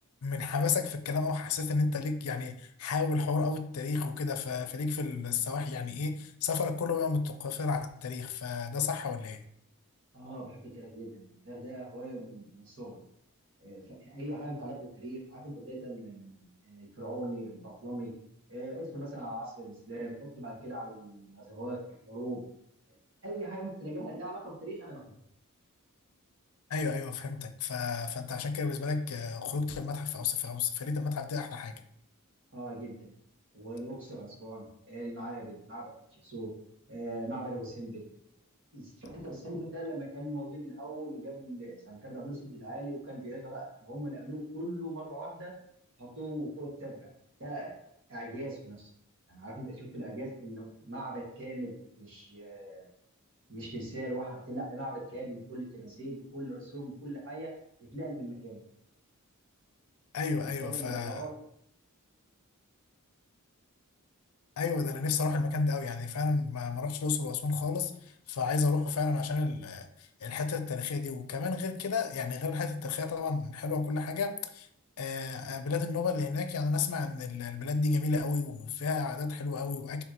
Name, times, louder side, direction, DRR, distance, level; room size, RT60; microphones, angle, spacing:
voice 1, 0.2-9.4 26.7-31.8 60.1-61.3 64.6-74.7 75.0-80.0, left 4 dB, 85° left, 8 dB, 0.5 m, -32 dB
voice 2, 10.1-13.0 13.6-18.1 18.5-22.4 23.2-25.1 32.5-33.1 33.5-36.5 36.9-38.0 38.7-45.5 46.0-47.1 47.4-47.7 48.1-48.9 49.3-52.9 53.5-57.5 57.8-58.6 60.6-61.3, right 1 dB, 60° right, -3 dB, 1.7 m, -40 dB
4.8 x 3.5 x 2.9 m, 0.71 s
head